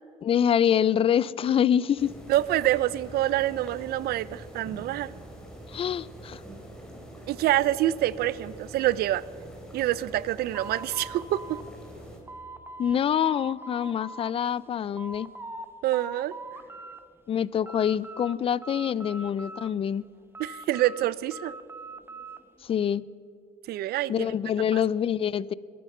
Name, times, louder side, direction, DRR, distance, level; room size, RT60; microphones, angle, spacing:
voice 1, 0.2-2.1 5.7-6.4 12.8-15.3 17.3-20.0 22.6-23.0 24.1-25.5, left 9 dB, 35° left, 0.4 m, -25 dB
sound 1, 2.0-12.2, right 1 dB, 5° left, 3.4 m, -45 dB
voice 2, 2.3-5.1 7.3-9.2 9.7-11.6 15.8-16.3 20.4-21.5 23.7-24.3 24.7-24.8, right 14 dB, 70° right, 0.5 m, -26 dB
sound 2, 10.5-13.0 13.2-14.3 14.7-15.7 15.9-17.0 17.4-18.3 18.6-19.9 20.3-22.4, right 2 dB, 15° right, 0.9 m, -42 dB
22.0 x 9.3 x 5.4 m
cardioid pair, 110°, 17 cm